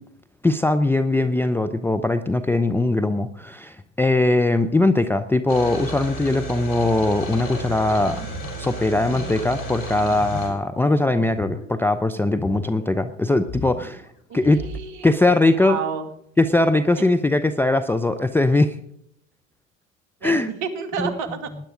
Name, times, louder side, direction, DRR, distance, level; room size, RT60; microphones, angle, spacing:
voice 1, 0.4-8.2 8.6-14.0 14.3-14.6 15.0-15.8 16.4-18.8 20.2-20.5 21.0-21.1, left 2 dB, 5° left, 10 dB, 0.5 m, -20 dB
sound 1, 5.5-10.5, right 2 dB, 80° left, 4.5 m, -33 dB
sound 2, 7.2-13.0 13.2-14.8, left 1 dB, 25° left, 3.6 m, -38 dB
voice 2, 14.3-15.1 15.4-16.1 20.2-21.5, right 6 dB, 50° right, 7 dB, 2.4 m, -30 dB
19.0 x 10.5 x 3.8 m, 0.70 s
hypercardioid pair, 90°, 40 cm